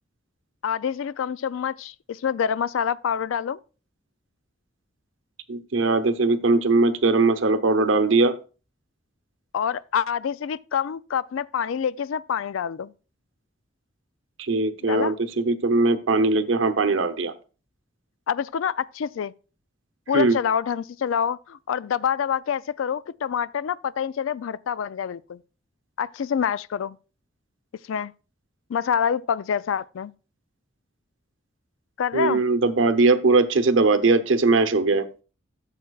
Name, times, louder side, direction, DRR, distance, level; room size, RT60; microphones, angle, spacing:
voice 1, 0.6-3.6 9.5-12.9 14.9-15.2 18.3-19.3 20.1-25.4 26.0-27.0 27.9-28.1 28.7-30.1 32.0-32.4, left 7 dB, 90° left, 0.4 m, -26 dB
voice 2, 5.5-8.3 14.4-17.3 20.1-20.4 32.1-35.1, right 3 dB, 80° right, 0.8 m, -20 dB
14.5 x 7.2 x 2.4 m
head